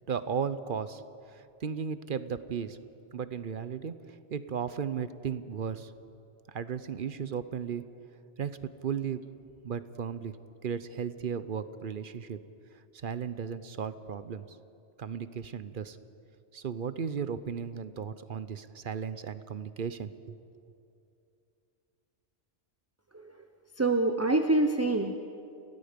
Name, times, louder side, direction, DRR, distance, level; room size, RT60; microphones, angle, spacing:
voice 1, 0.1-1.0 1.3-2.8 3.1-5.9 6.5-7.8 8.4-9.2 9.6-10.3 10.6-12.4 13.0-14.5 15.0-16.0 16.5-20.4, right 7 dB, 50° right, 13 dB, 0.8 m, -35 dB
voice 2, 23.8-25.2, right 2 dB, 15° right, 6 dB, 0.6 m, -25 dB
29.0 x 17.5 x 5.2 m, 2.6 s
omnidirectional pair, 1.2 m